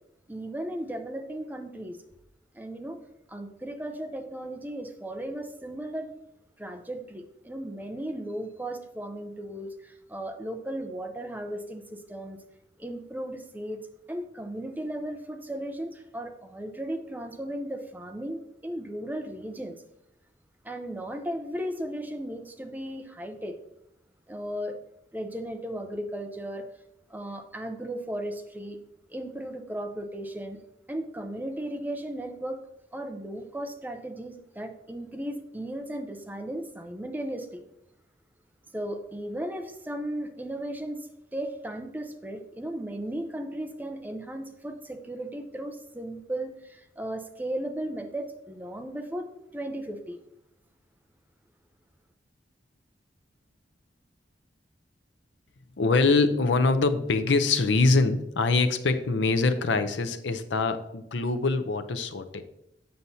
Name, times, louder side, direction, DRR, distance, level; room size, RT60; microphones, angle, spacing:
voice 1, 0.3-2.0 2.5-3.0 3.3-6.1 6.6-12.4 12.8-13.8 14.1-19.8 20.6-23.6 24.3-24.8 25.1-26.6 27.1-28.8 29.1-30.6 30.9-32.6 32.9-37.6 38.7-49.3 49.5-50.2, right 1 dB, 10° right, 6 dB, 0.6 m, -36 dB
voice 2, 55.8-62.4, left 3 dB, 80° left, 11 dB, 0.6 m, -24 dB
7.7 x 6.9 x 2.7 m, 0.84 s
head